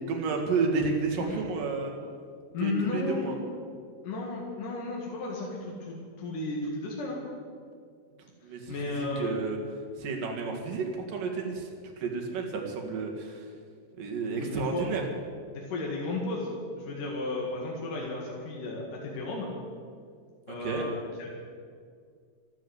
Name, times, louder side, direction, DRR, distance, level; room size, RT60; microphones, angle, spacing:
voice 1, 0.1-1.9 2.6-3.4 8.4-9.6 10.0-11.7 12.0-13.5 13.9-15.1 20.5-20.9, right 4 dB, 70° right, 2 dB, 3.5 m, -31 dB
voice 2, 2.5-3.3 4.0-7.2 8.7-9.3 14.2-14.9 15.5-19.5 20.5-21.3, left 3 dB, 65° left, -2 dB, 3.4 m, -34 dB
13.5 x 13.0 x 8.0 m, 2.1 s
omnidirectional pair, 4.0 m